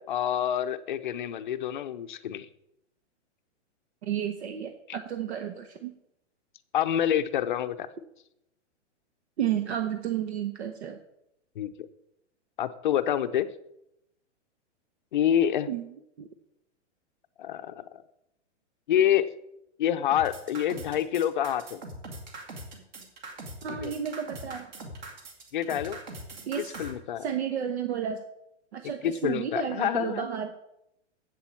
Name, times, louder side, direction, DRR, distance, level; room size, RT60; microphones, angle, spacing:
voice 1, 0.0-2.5 4.9-5.0 6.7-7.9 11.6-11.9 12.6-13.5 15.1-15.7 17.4-17.8 18.9-19.3 19.8-21.8 23.7-23.9 25.5-26.0 26.6-27.2 29.0-30.3, left 10 dB, 40° left, 11 dB, 0.6 m, -27 dB
voice 2, 4.0-5.9 9.4-11.0 15.7-15.8 16.2-16.3 23.6-24.7 26.5-26.8 27.2-28.2 28.7-30.5, right 9 dB, 65° right, 7 dB, 1.1 m, -32 dB
sound 1, 20.1-26.9, right 2 dB, 40° right, 2.1 m, -41 dB
7.8 x 7.3 x 8.5 m, 0.82 s
hypercardioid pair, 175°, 36 cm